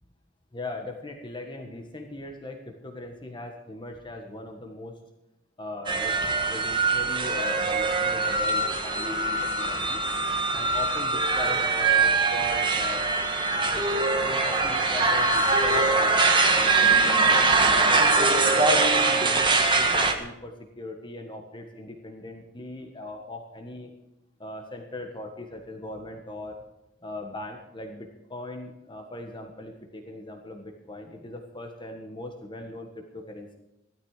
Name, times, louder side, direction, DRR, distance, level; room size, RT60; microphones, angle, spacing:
voice 1, 0.5-5.0 5.6-10.0 10.5-13.0 13.7-17.4 17.9-23.9 24.4-26.6 27.0-33.5, left 2 dB, 25° left, 3 dB, 1.5 m, -39 dB
sound 1, 5.9-20.1, right 3 dB, 25° right, 1.6 m, -22 dB
16.0 x 13.0 x 4.9 m, 0.94 s
head